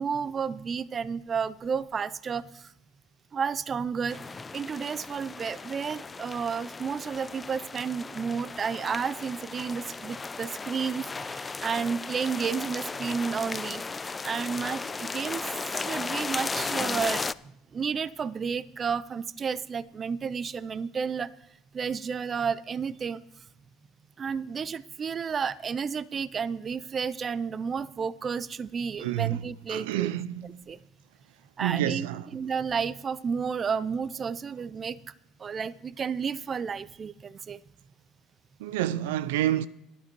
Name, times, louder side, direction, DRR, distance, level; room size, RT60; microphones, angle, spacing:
voice 1, 0.0-2.7 3.3-4.2 4.5-15.5 15.8-17.3 17.7-21.3 21.7-23.2 24.2-30.1 30.7-30.8 31.6-32.1 32.3-35.0 35.4-37.6, right 6 dB, 35° right, 0.5 m, -31 dB
sound 1, 4.1-17.3, left 4 dB, 25° left, 0.4 m, -36 dB
voice 2, 29.0-29.4 29.7-30.6 31.6-32.3 38.6-39.7, right 13 dB, 85° right, 0.5 m, -28 dB
12.5 x 11.5 x 4.6 m
supercardioid pair, 90°, 0 cm